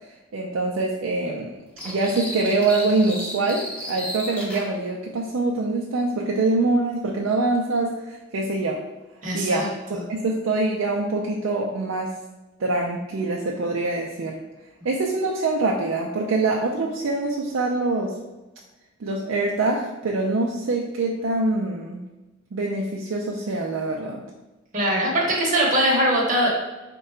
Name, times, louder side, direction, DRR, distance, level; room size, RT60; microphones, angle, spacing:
voice 1, 0.3-1.6 1.8-8.8 9.3-12.1 12.6-14.4 14.8-18.1 19.0-22.0 22.5-24.2, right 2 dB, 80° right, -1 dB, 0.4 m, -24 dB
sound 1, 1.8-4.7, equal, 5° left, 0.6 m, -34 dB
voice 2, 9.2-9.7 9.9-10.0 24.7-26.5, right 1 dB, 40° right, -4 dB, 0.8 m, -21 dB
3.7 x 2.2 x 4.3 m, 1.1 s
head